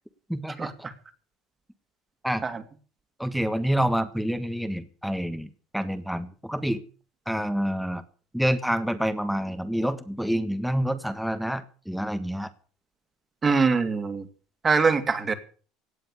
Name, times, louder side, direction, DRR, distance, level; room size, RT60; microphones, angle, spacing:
voice 1, 0.3-0.7 2.2-2.4 3.2-6.8 7.2-8.0 8.3-12.5, equal, ahead, 10 dB, 1.5 m, -27 dB
voice 2, 13.4-14.2 14.6-15.3, right 4 dB, 30° right, 8 dB, 2.7 m, -23 dB
17.5 x 7.8 x 8.3 m, 0.41 s
hypercardioid pair, 80°, 0 cm